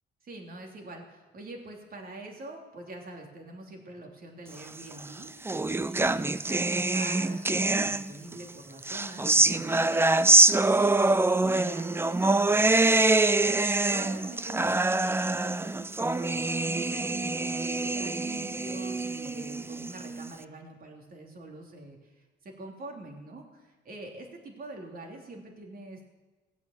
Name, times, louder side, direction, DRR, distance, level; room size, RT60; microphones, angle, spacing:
voice 1, 0.2-13.1 13.6-26.1, right 2 dB, 45° right, 1 dB, 3.2 m, -44 dB
sound 1, 4.9-8.3 8.8-20.3, right 2 dB, 10° right, 0.5 m, -25 dB
17.5 x 8.2 x 7.3 m, 1.2 s
cardioid pair, 90°, 20 cm